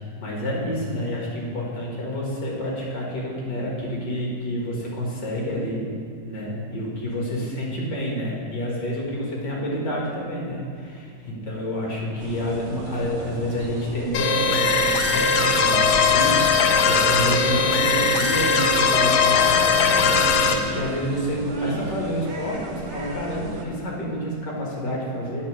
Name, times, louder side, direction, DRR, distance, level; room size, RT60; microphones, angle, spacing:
voice 1, 0.2-5.9 6.2-25.4, equal, 55° left, -3 dB, 2.2 m, -28 dB
sound 1, 12.2-23.6, right 2 dB, 85° right, 0.6 m, -36 dB
sound 2, 14.1-20.5, left 5 dB, 80° left, 1.4 m, -19 dB
8.2 x 4.4 x 6.2 m, 2.4 s
omnidirectional pair, 2.3 m